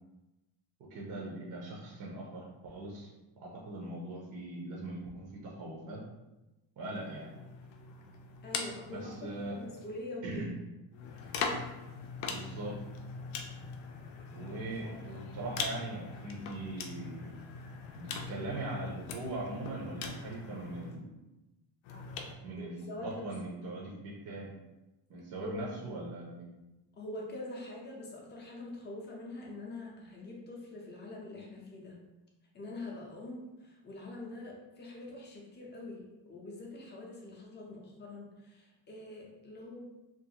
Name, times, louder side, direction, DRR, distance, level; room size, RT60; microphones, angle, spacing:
voice 1, 0.9-3.1 3.4-6.0 6.8-7.3 8.9-9.6 10.2-10.5 12.3-12.8 14.3-17.3 17.9-21.1 22.4-24.5 25.1-26.5, right 2 dB, 45° right, -4 dB, 0.5 m, -41 dB
sound 1, 6.8-10.1 10.9-21.0 21.8-22.3, left 4 dB, 85° left, 0.5 m, -41 dB
voice 2, 8.4-10.3 22.6-23.3 25.4-25.7 26.9-32.0 32.5-39.8, left 2 dB, 25° left, -2 dB, 0.4 m, -44 dB
2.5 x 2.3 x 2.7 m, 1.0 s
cardioid pair, 165°, 47 cm